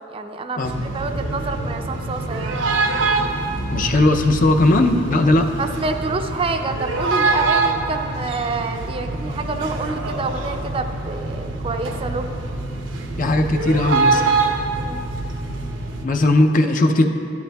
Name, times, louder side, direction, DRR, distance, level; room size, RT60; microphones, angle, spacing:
voice 1, 0.1-2.6 5.6-12.3 14.8-15.0, right 3 dB, 30° right, 6 dB, 0.4 m, -27 dB
sound 1, 0.6-16.0, right 3 dB, 85° right, 0.7 m, -25 dB
voice 2, 3.7-5.5 13.2-14.4 16.0-17.0, left 2 dB, 45° left, 5 dB, 0.5 m, -17 dB
12.5 x 10.5 x 2.3 m, 2.7 s
head